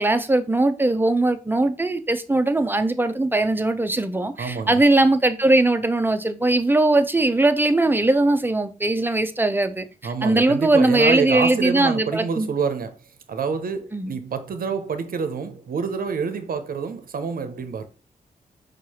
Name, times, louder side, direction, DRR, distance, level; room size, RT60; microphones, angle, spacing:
voice 1, 0.0-9.8 10.2-12.5 13.9-14.2, right 2 dB, 15° right, 0.6 m, -20 dB
voice 2, 4.4-4.8 10.0-12.9 13.3-17.9, right 5 dB, 65° right, 0.7 m, -27 dB
4.6 x 2.5 x 4.2 m
cardioid pair, 55°, 16 cm